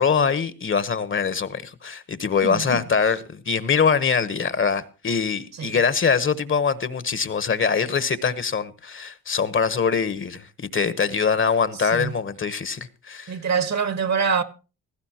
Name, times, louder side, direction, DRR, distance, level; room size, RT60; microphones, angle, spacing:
voice 1, 0.0-13.4, left 6 dB, 40° left, 1.1 m, -23 dB
voice 2, 2.4-2.8 5.6-5.7 11.9-12.1 13.3-14.4, right 6 dB, 55° right, 1.5 m, -24 dB
17.5 x 15.5 x 2.9 m
cardioid pair, 95°, 33 cm